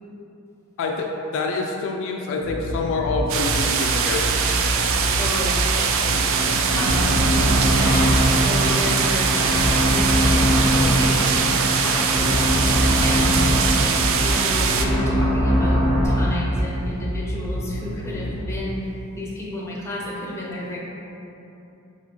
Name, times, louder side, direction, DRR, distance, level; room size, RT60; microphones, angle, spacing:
voice 1, 0.8-5.0, left 3 dB, 60° left, 1 dB, 0.3 m, -27 dB
sound 1, 2.4-18.6, equal, 85° right, 0.7 m, -29 dB
sound 2, 3.3-14.9, right 6 dB, 60° right, 0.3 m, -22 dB
voice 2, 5.2-7.3 7.7-11.4 11.7-12.5 13.0-13.6 14.2-20.8, left 1 dB, 10° left, -4 dB, 0.6 m, -31 dB
sound 3, 6.0-16.0, equal, 45° right, 1.3 m, -22 dB
4.0 x 3.4 x 3.1 m, 2.9 s
head